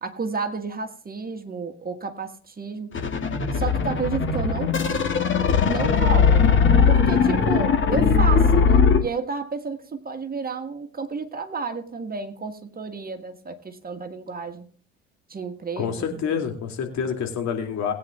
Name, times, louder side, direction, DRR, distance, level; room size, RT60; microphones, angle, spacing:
voice 1, 0.0-2.9 3.5-4.7 5.6-6.5 6.9-14.7 15.3-16.4, right 4 dB, 25° right, 6 dB, 1.6 m, -31 dB
sound 1, 2.9-9.0, left 6 dB, 35° left, 2.1 m, -19 dB
voice 2, 15.8-17.9, left 7 dB, 55° left, 3 dB, 2.7 m, -27 dB
20.0 x 9.1 x 2.4 m, 0.44 s
hypercardioid pair, 55°, 33 cm